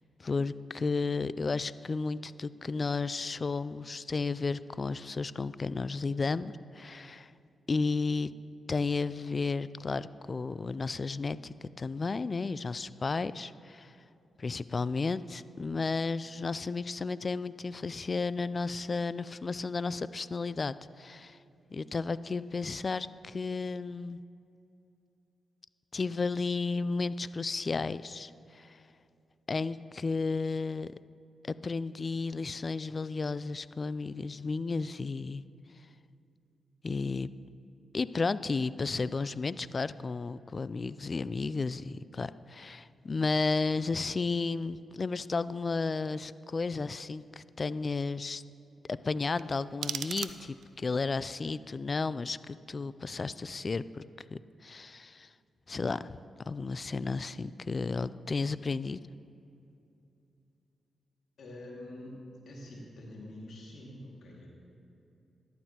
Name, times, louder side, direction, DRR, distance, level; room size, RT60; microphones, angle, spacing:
voice 1, 0.2-7.3 7.7-8.3 8.7-13.9 14.4-21.4 21.7-24.2 25.9-28.8 29.5-30.9 31.4-35.4 36.8-37.3 37.9-48.4 48.9-54.0 54.3-55.3 55.7-56.2 56.5-59.1, left 4 dB, 45° left, 17 dB, 0.3 m, -33 dB
sound 1, 49.3-50.8, right 9 dB, 80° right, 0.4 m, -39 dB
voice 2, 61.4-64.5, left 1 dB, 70° left, -2 dB, 2.1 m, -46 dB
13.5 x 11.5 x 2.9 m, 2.7 s
supercardioid pair, 50°, 0 cm